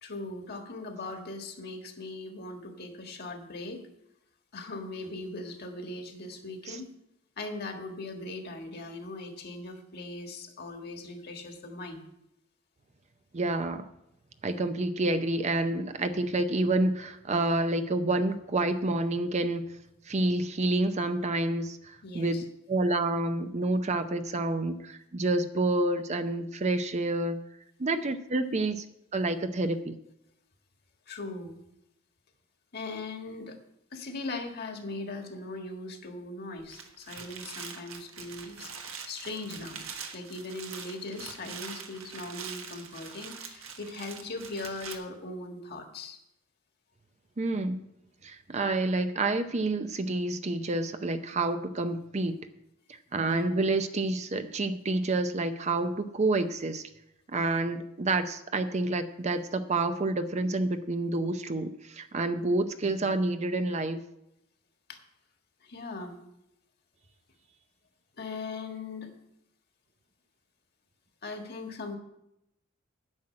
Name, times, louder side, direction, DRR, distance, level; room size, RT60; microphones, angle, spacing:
voice 1, 0.0-3.8 4.5-6.9 7.4-12.0 22.0-22.4 31.1-31.6 32.7-33.6 33.9-38.7 39.1-39.8 40.1-46.2 53.2-53.6 62.8-63.1 64.9-65.0 65.6-66.2 68.2-69.1 71.2-72.0, left 2 dB, 50° left, 4 dB, 1.6 m, -39 dB
voice 2, 13.3-13.9 14.4-19.6 20.1-27.4 27.8-28.8 29.1-30.0 47.4-47.9 48.2-52.4 52.9-56.8 57.3-64.0, right 2 dB, 35° right, 9 dB, 0.6 m, -28 dB
sound 1, 36.6-45.0, right 6 dB, 80° right, 1.4 m, -43 dB
9.8 x 6.2 x 8.7 m, 0.83 s
head